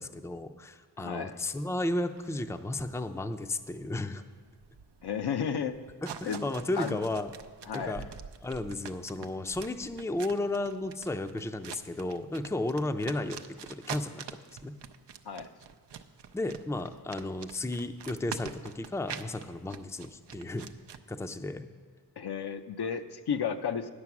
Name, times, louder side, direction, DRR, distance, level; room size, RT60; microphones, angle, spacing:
voice 1, 0.0-4.2 6.2-7.3 7.7-8.0 8.4-13.4 13.7-14.2 14.6-14.7 16.3-20.7 21.1-21.7, left 2 dB, 5° left, 8 dB, 0.5 m, -33 dB
voice 2, 1.0-1.4 5.0-5.8 6.2-6.4 6.8-7.0 7.7-8.1 15.3-15.5 22.2-23.9, left 7 dB, 70° left, 8 dB, 0.6 m, -33 dB
sound 1, 1.9-21.0, right 7 dB, 80° right, 0.6 m, -46 dB
9.7 x 6.7 x 6.0 m, 1.5 s
cardioid pair, 40°, 41 cm